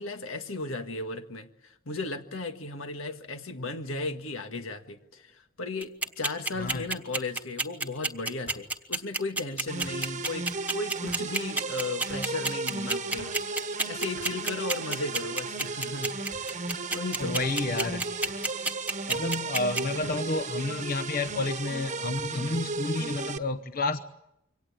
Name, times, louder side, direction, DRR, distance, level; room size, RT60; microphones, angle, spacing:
voice 1, 0.0-17.4, left 3 dB, 85° left, 1.8 m, -36 dB
sound 1, 5.0-5.4 5.8-6.3 7.4-7.5 8.4-8.7 9.8-10.0 11.1-11.2 12.1-12.3 13.2-13.4 14.2-14.3 15.1-15.5 16.3-16.5 17.2-17.3 18.2-18.4 19.1-19.3 20.0-20.2 21.3-21.5 22.1-22.3, left 1 dB, 65° left, 4.4 m, -50 dB
sound 2, 5.8-19.8, right 2 dB, 10° right, 1.3 m, -28 dB
sound 3, 9.7-23.4, right 3 dB, 35° right, 1.2 m, -35 dB
voice 2, 17.2-18.0 19.1-24.0, left 2 dB, 45° left, 0.9 m, -30 dB
24.5 x 18.0 x 8.5 m
head